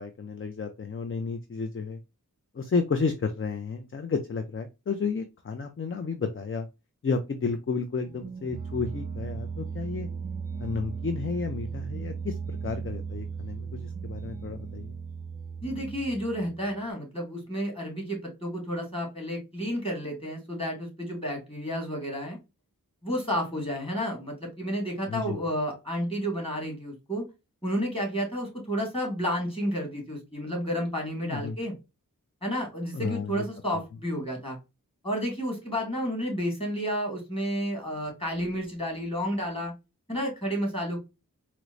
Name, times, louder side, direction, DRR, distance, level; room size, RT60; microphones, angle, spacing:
voice 1, 0.0-2.0 2.5-6.7 7.0-10.1 10.6-14.9 25.1-25.4 31.2-31.6 32.9-33.4, left 4 dB, 40° left, 7 dB, 0.4 m, -32 dB
sound 1, 8.0-16.8, right 5 dB, 25° right, 0.3 m, -37 dB
voice 2, 15.6-22.4 23.0-27.3 27.6-31.7 32.4-34.6 35.0-39.7 40.1-41.0, equal, 15° left, 0 dB, 1.7 m, -31 dB
4.4 x 2.0 x 2.4 m, 0.25 s
wide cardioid pair, 45°, 35 cm